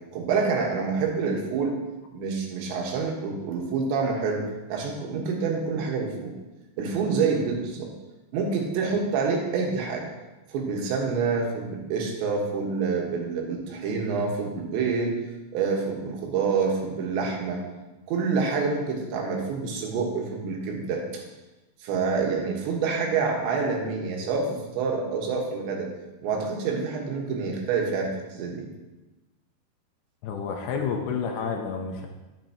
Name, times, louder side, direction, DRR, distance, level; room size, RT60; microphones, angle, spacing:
voice 1, 0.1-1.8 2.1-4.4 4.7-6.3 6.8-7.9 8.3-10.1 10.5-15.2 15.5-17.6 18.1-21.2 21.8-25.9 26.2-28.6, right 5 dB, 85° right, 0 dB, 3.6 m, -27 dB
voice 2, 30.2-32.1, left 6 dB, 75° left, 2 dB, 2.6 m, -30 dB
10.5 x 9.0 x 2.9 m, 1.1 s
omnidirectional pair, 5.0 m